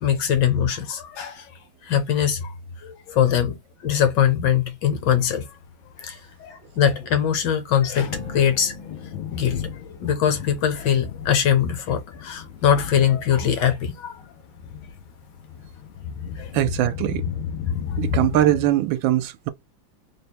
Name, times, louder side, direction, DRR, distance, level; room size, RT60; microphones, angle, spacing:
voice 1, 0.0-1.5 1.8-2.5 2.8-5.5 6.0-8.8 9.3-14.2 16.4-16.5 17.9-18.0, left 9 dB, 70° left, 1.4 m, -22 dB
Thunder, 5.0-18.7, left 7 dB, 85° left, 1.4 m, -34 dB
sound 1, 8.1-11.6, right 1 dB, 50° right, 0.6 m, -45 dB
voice 2, 16.5-17.2 18.0-19.5, right 14 dB, 80° right, 1.3 m, -21 dB
3.3 x 2.1 x 4.2 m
omnidirectional pair, 2.1 m